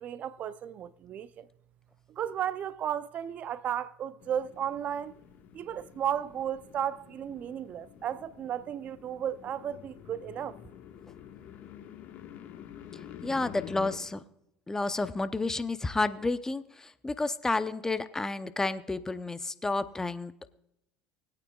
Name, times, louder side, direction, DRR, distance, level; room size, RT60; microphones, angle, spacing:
voice 1, 0.0-1.5 2.1-5.1 5.5-10.6, right 9 dB, 50° right, 0.5 m, -34 dB
sound 1, 4.2-14.0, left 9 dB, 55° left, 1.5 m, -48 dB
voice 2, 12.9-14.2 14.7-20.5, left 3 dB, 15° left, 0.7 m, -31 dB
20.5 x 9.0 x 2.3 m
hypercardioid pair, 75°, 3 cm